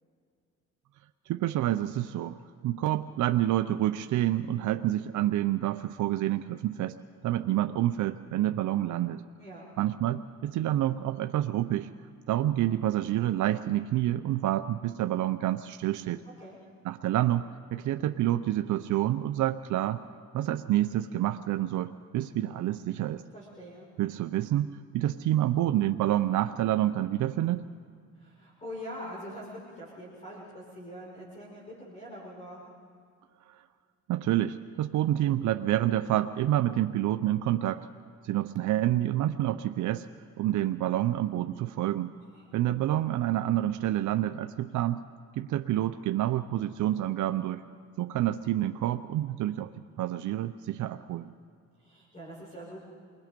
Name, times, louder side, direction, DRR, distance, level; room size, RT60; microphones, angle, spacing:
voice 1, 1.3-2.4 2.6-6.9 7.2-9.2 9.8-11.9 12.3-16.2 16.8-20.0 20.3-23.2 24.0-27.6 33.5-33.6 34.1-37.9 38.2-40.1 40.4-42.1 42.5-45.0 45.4-47.6 48.0-49.7 50.0-51.3, right 13 dB, 75° right, 9 dB, 0.6 m, -28 dB
voice 2, 9.4-9.7 16.4-16.6 23.3-23.9 28.1-32.6 42.3-42.5 51.8-52.8, equal, 25° left, -4 dB, 5.8 m, -44 dB
28.5 x 21.0 x 5.2 m, 2.3 s
cardioid pair, 90°, 30 cm